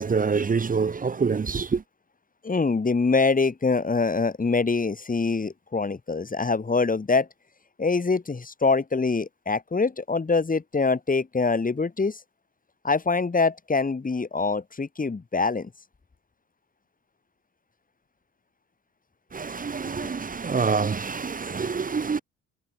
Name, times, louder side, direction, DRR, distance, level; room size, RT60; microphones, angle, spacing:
voice 1, 0.0-1.8 19.3-22.2, right 5 dB, 30° right, 1.0 m, -26 dB
voice 2, 2.4-7.3 7.8-12.2 12.8-15.7, left 4 dB, 25° left, 7.7 m, -24 dB
cardioid pair, 90°, 30 cm